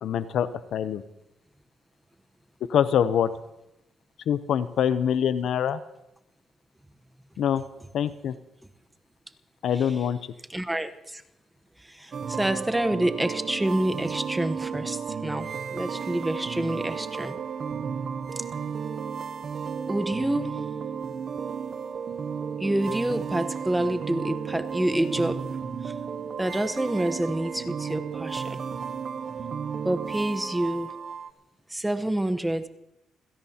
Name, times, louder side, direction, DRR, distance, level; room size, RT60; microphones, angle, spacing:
voice 1, 0.0-1.0 2.7-3.3 4.3-5.8 7.4-7.6 7.9-8.3 9.6-10.2, left 9 dB, 70° left, 13 dB, 0.7 m, -24 dB
voice 2, 10.5-11.2 11.8-17.4 18.4-18.5 19.9-20.6 22.6-25.4 25.8-25.9 26.4-28.6 29.8-30.9 31.7-32.7, right 1 dB, 10° right, 8 dB, 1.0 m, -28 dB
sound 1, 12.1-31.3, right 6 dB, 50° right, 0.9 m, -33 dB
28.0 x 16.5 x 2.9 m, 0.89 s
cardioid pair, 90°, 0 cm